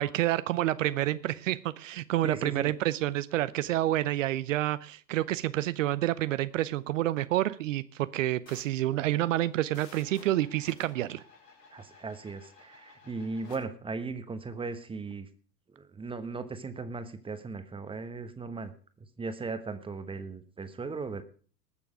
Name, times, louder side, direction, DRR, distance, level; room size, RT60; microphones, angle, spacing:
voice 1, 0.0-11.2, right 14 dB, 50° right, 16 dB, 0.7 m, -28 dB
voice 2, 2.2-2.7 11.7-15.3 15.8-18.7 19.2-21.2, right 4 dB, 10° right, 11 dB, 1.1 m, -37 dB
sound 1, 8.5-13.6, left 4 dB, 75° left, 4.4 m, -55 dB
20.0 x 6.9 x 5.0 m, 0.42 s
figure-of-eight pair, 95°, 49 cm